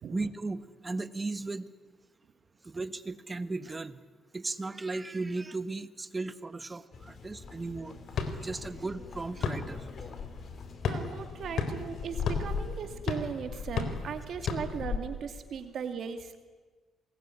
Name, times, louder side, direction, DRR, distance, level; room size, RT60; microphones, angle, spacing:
voice 1, 0.1-1.7 2.6-4.0 4.3-8.0 8.4-9.9, right 3 dB, 25° right, 13 dB, 1.4 m, -36 dB
sound 1, 6.9-13.0, left 4 dB, 50° left, 3.6 m, -48 dB
sound 2, 8.1-15.0, left 5 dB, 65° left, 3.9 m, -34 dB
voice 2, 10.8-16.4, right 7 dB, 65° right, 7 dB, 2.4 m, -38 dB
28.5 x 20.5 x 9.9 m, 1.4 s
cardioid pair, 90°, 0 cm